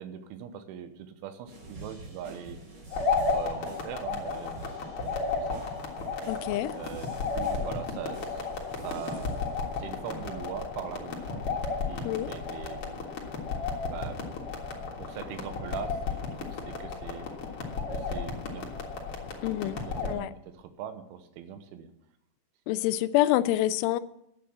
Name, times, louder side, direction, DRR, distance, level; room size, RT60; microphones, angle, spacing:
voice 1, 0.0-2.6 3.3-5.7 6.0-6.1 6.7-11.4 11.9-13.1 13.9-14.2 14.7-17.3 17.9-18.7 19.7-21.9, right 9 dB, 90° right, 9 dB, 3.4 m, -42 dB
sound 1, 1.5-9.7 10.1-10.2, right 2 dB, 35° right, 4.5 m, -47 dB
sound 2, 2.9-20.1, left 4 dB, 60° left, 1.4 m, -33 dB
voice 2, 6.2-6.7 12.0-12.3 19.4-20.3 22.7-24.0, left 14 dB, 85° left, 13 dB, 3.0 m, -27 dB
11.0 x 8.6 x 7.4 m, 0.79 s
omnidirectional pair, 5.5 m